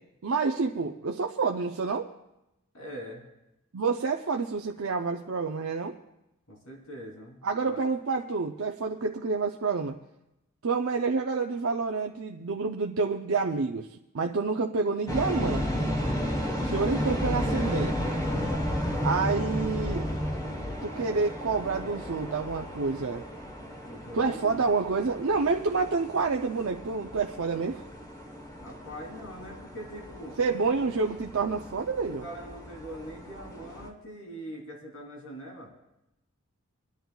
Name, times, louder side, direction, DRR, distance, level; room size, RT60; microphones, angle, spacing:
voice 1, 0.2-2.1 3.7-5.9 7.4-10.0 10.6-13.9 14.1-15.8 16.6-17.9 19.0-20.1 20.8-23.2 24.1-27.8 30.4-32.2, right 4 dB, 70° right, 2 dB, 0.6 m, -28 dB
voice 2, 2.7-3.3 6.5-7.8 17.4-18.6 23.8-24.6 28.5-30.4 30.7-30.9 32.1-35.7, equal, 70° left, -1 dB, 3.2 m, -43 dB
sound 1, 15.1-33.9, equal, 15° left, 1.1 m, -33 dB
28.5 x 10.5 x 2.3 m, 0.90 s
head